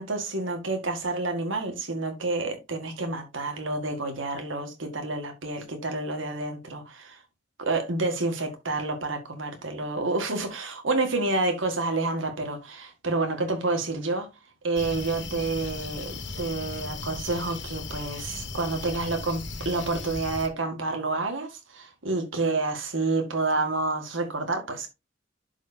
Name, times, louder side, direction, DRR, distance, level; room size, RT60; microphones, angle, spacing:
voice 1, 0.0-7.2 7.6-14.3 14.6-24.9, right 3 dB, 85° right, 1.8 m, -29 dB
sound 1, 14.7-20.5, left 3 dB, 65° left, 1.5 m, -37 dB
11.5 x 4.9 x 2.7 m
head